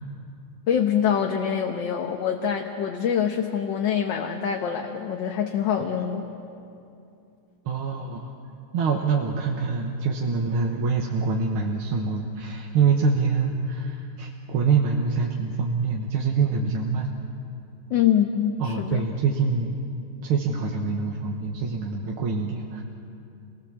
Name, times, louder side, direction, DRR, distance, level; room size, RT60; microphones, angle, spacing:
voice 1, 0.7-6.2 17.9-19.0, left 8 dB, 65° left, 3 dB, 1.7 m, -25 dB
voice 2, 7.7-8.3 8.7-17.1 18.6-19.8 20.2-22.8, right 5 dB, 90° right, 0 dB, 2.1 m, -25 dB
27.5 x 19.0 x 7.3 m, 2.7 s
omnidirectional pair, 2.3 m